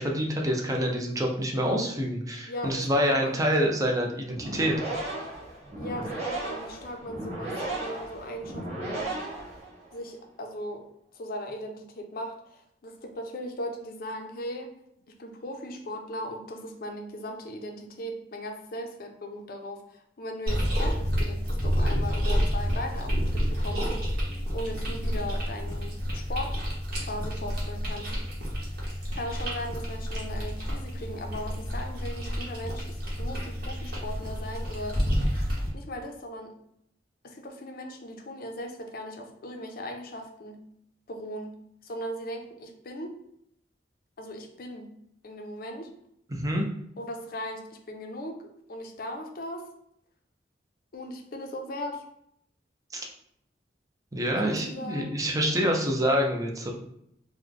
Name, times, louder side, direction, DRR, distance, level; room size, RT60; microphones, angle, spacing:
voice 1, 0.0-4.7 46.3-46.7 52.9-53.1 54.1-56.7, equal, 20° right, 0 dB, 0.6 m, -26 dB
voice 2, 2.5-3.4 5.8-9.1 9.9-10.9 11.1-14.7 15.1-24.2 24.5-26.6 27.0-28.1 29.2-35.0 35.7-36.5 37.2-40.6 41.1-41.5 41.8-43.1 44.2-44.9 45.2-45.9 47.0-48.4 48.7-49.6 50.9-52.0 54.4-55.1, left 1 dB, 55° left, 3 dB, 0.6 m, -38 dB
sound 1, 4.3-10.0, right 2 dB, 40° right, 1.3 m, -35 dB
sound 2, 20.5-35.7, equal, 60° right, 1.2 m, -29 dB
3.1 x 2.2 x 3.8 m, 0.74 s
head